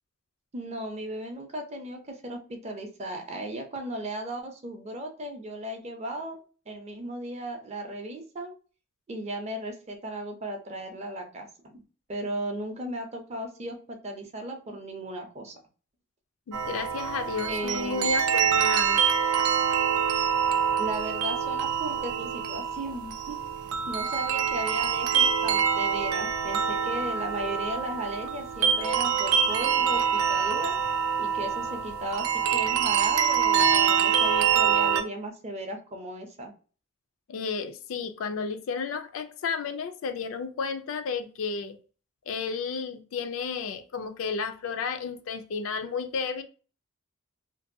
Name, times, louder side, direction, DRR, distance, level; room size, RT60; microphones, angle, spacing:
voice 1, 0.5-6.4 6.7-8.5 9.1-11.8 12.1-15.6 17.5-18.1 20.8-23.4 23.9-30.8 31.2-36.5, right 1 dB, 30° right, 0.5 m, -36 dB
voice 2, 16.5-19.0 37.3-41.8 42.3-46.4, left 5 dB, 70° left, 0.4 m, -32 dB
sound 1, 16.5-35.0, right 7 dB, 90° right, 0.4 m, -25 dB
2.6 x 2.2 x 2.6 m
head